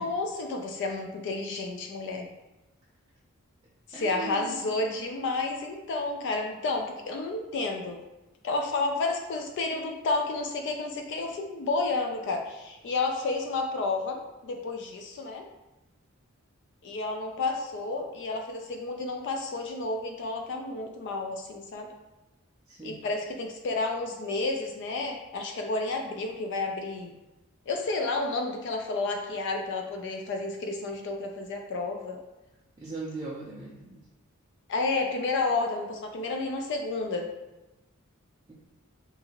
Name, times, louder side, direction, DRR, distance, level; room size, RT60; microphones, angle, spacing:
voice 1, 0.0-2.3 3.9-8.0 8.4-15.4 16.8-21.9 22.8-27.1 27.7-32.2 34.7-37.3, left 3 dB, 60° left, 3 dB, 0.3 m, -31 dB
voice 2, 3.9-4.7 22.7-23.0 32.8-34.0 38.5-38.6, right 3 dB, 20° right, -7 dB, 0.4 m, -39 dB
2.7 x 2.4 x 2.8 m, 1.0 s
head